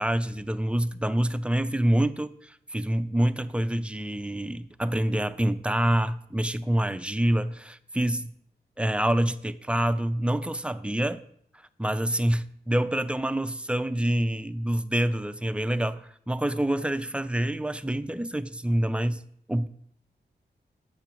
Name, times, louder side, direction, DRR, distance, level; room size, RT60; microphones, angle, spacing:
voice 1, 0.0-8.3 8.8-11.2 11.8-19.2 19.5-19.7, right 1 dB, 5° right, 0.3 m, -26 dB
7.0 x 4.4 x 5.9 m
wide cardioid pair, 115°, 18 cm